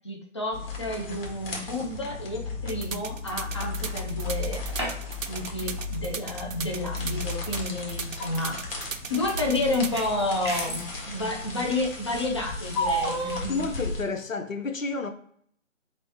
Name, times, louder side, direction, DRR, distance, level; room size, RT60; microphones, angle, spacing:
voice 1, 0.0-4.6 5.3-8.6 9.1-13.6, left 2 dB, 20° left, 0.7 m, -30 dB
sound 1, 0.5-14.0, left 3 dB, 45° left, 1.6 m, -36 dB
sound 2, 2.7-10.0, right 6 dB, 75° right, 0.6 m, -36 dB
sound 3, 4.3-5.3 5.6-5.7 7.1-7.2 7.9-8.4 9.3-10.9 12.7-13.4, right 1 dB, 20° right, 0.7 m, -31 dB
voice 2, 13.5-15.1, left 4 dB, 80° left, 1.0 m, -30 dB
3.2 x 3.2 x 4.1 m
figure-of-eight pair, 155°, 39 cm